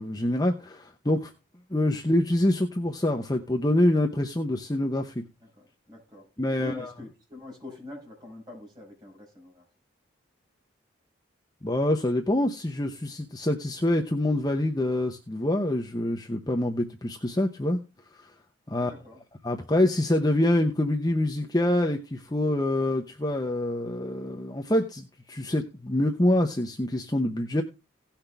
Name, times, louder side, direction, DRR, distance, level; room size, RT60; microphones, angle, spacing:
voice 1, 0.0-1.3 1.7-5.2 6.4-6.9 11.6-17.8 18.1-18.3 18.7-18.9 19.4-27.6, left 1 dB, 20° left, 0.8 m, -26 dB
voice 2, 5.4-6.3 6.6-9.7 18.8-19.2, left 1 dB, 20° right, 5.4 m, -44 dB
17.0 x 5.9 x 3.4 m
head